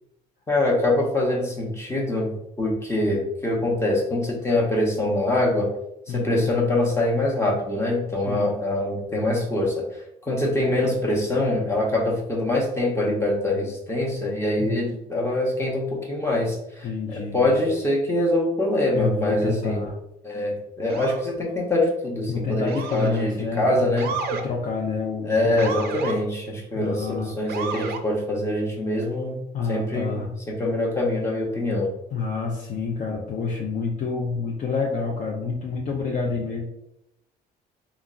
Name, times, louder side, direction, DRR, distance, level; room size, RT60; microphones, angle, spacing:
voice 1, 0.5-5.7 6.1-19.8 20.2-24.1 25.2-29.4 29.7-31.9, left 1 dB, 15° left, -2 dB, 0.8 m, -24 dB
voice 2, 6.1-6.4 8.3-8.5 14.6-14.8 16.8-17.6 18.9-19.9 22.3-23.8 24.1-26.0 26.7-27.3 29.5-30.3 32.1-36.7, left 4 dB, 45° left, -2 dB, 0.5 m, -28 dB
Motor vehicle (road) / Siren, 20.9-21.3 22.7-23.2 24.0-24.5 25.6-26.2 27.5-28.0, right 5 dB, 65° right, 0.4 m, -31 dB
3.4 x 2.0 x 2.4 m, 0.82 s
cardioid pair, 110°, 17 cm